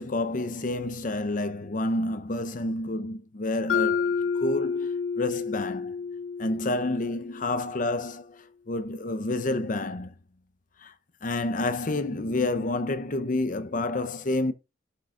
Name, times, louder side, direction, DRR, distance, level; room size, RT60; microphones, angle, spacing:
voice 1, 0.0-4.1 4.3-6.0 6.4-10.1 10.8-10.9 11.2-14.5, left 2 dB, 45° left, 0.7 m, -29 dB
Mallet percussion, 3.7-7.7, left 6 dB, 80° left, 0.6 m, -29 dB
16.0 x 6.2 x 2.5 m
head